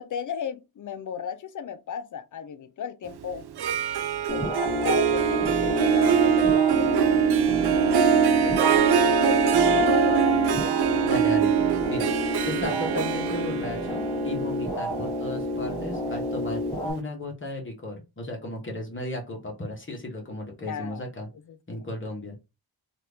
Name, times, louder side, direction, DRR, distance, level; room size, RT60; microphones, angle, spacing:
voice 1, 0.0-3.4 4.3-7.3 8.1-10.4 20.7-21.0 21.5-21.8, left 7 dB, 50° left, 0.5 m, -35 dB
Harp, 3.4-16.4, right 8 dB, 80° right, 0.5 m, -23 dB
sound 1, 4.3-16.9, left 2 dB, 15° left, 1.3 m, -30 dB
voice 2, 11.0-11.5 11.9-12.1 12.4-21.3 21.7-22.4, left 2 dB, 30° left, 1.0 m, -35 dB
2.8 x 2.4 x 3.4 m
wide cardioid pair, 115°, 38 cm